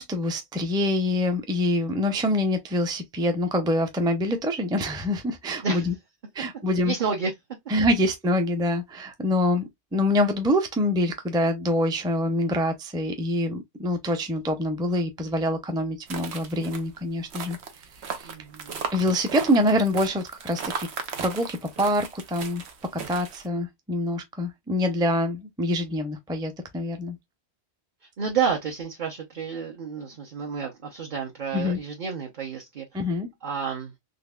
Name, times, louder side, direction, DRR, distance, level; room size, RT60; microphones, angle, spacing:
voice 1, 0.0-5.9 6.3-6.9 7.7-9.6 9.9-17.6 18.2-18.3 18.9-20.9 21.2-22.6 23.1-27.2 31.5-31.8 32.9-33.3, left 1 dB, 5° right, 0.4 m, -25 dB
voice 2, 6.8-7.3 18.2-18.8 28.2-32.9 33.4-33.9, right 6 dB, 50° right, 0.9 m, -30 dB
sound 1, 16.1-23.5, right 6 dB, 80° right, 1.1 m, -37 dB
4.1 x 3.1 x 2.3 m
omnidirectional pair, 1.1 m